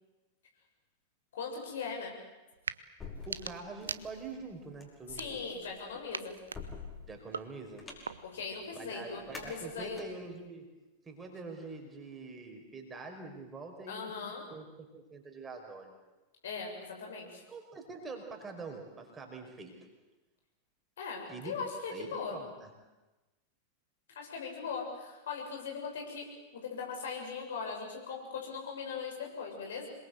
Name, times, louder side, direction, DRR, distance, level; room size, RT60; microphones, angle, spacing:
voice 1, 1.3-2.1 5.1-6.3 8.2-10.0 13.9-14.4 16.4-17.4 21.0-22.4 24.2-29.9, left 5 dB, 60° left, 1 dB, 7.3 m, -39 dB
sound 1, 2.5-2.8 3.2-4.5 5.0-5.7 6.1-8.5, right 5 dB, 70° right, 0.9 m, -43 dB
sound 2, 3.0-10.4, left 4 dB, 20° left, 5.6 m, -49 dB
voice 2, 3.3-5.4 7.1-7.8 8.7-10.7 11.0-14.7 14.9-15.9 17.5-19.7 21.3-21.5 21.9-22.7, right 3 dB, 15° right, 2 dB, 5.1 m, -45 dB
27.0 x 22.0 x 8.0 m, 1.1 s
figure-of-eight pair, 90°, 0 cm